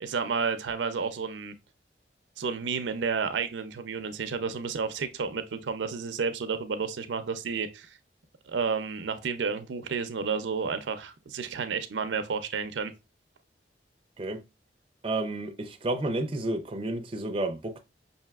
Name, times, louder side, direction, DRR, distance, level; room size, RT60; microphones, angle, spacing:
voice 1, 0.0-1.5 2.4-8.0 8.5-12.9, right 5 dB, 90° right, 0.5 m, -31 dB
voice 2, 15.0-17.8, right 2 dB, 30° right, 0.5 m, -31 dB
5.6 x 2.6 x 2.3 m
head